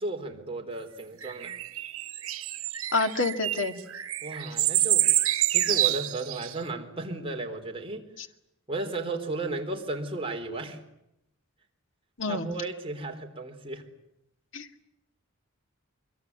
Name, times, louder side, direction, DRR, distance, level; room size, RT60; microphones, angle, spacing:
voice 1, 0.0-1.6 4.2-5.1 5.5-8.1 8.7-10.8 12.3-13.8, right 2 dB, 25° right, 3 dB, 3.9 m, -34 dB
sound 1, 1.2-6.5, right 14 dB, 85° right, 1.6 m, -27 dB
voice 2, 2.9-3.8 8.2-8.3 12.2-12.5 14.5-14.8, left 3 dB, 60° left, 7 dB, 2.2 m, -28 dB
25.5 x 23.5 x 9.6 m, 0.85 s
head